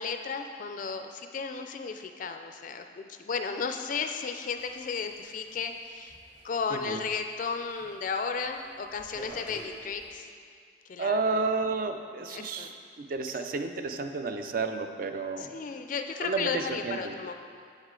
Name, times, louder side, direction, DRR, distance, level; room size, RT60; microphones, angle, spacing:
voice 1, 0.0-6.2 6.4-10.3 10.9-11.4 12.3-12.8 13.3-13.4 15.4-17.3, left 5 dB, 45° left, 6 dB, 0.3 m, -34 dB
sound 1, 4.6-7.4 7.7-8.0 8.4-10.1, right 2 dB, 5° right, 0.7 m, -49 dB
voice 2, 6.7-7.0 11.0-15.5 16.2-17.2, right 4 dB, 50° right, 7 dB, 0.4 m, -31 dB
7.3 x 6.3 x 3.7 m, 2.2 s
head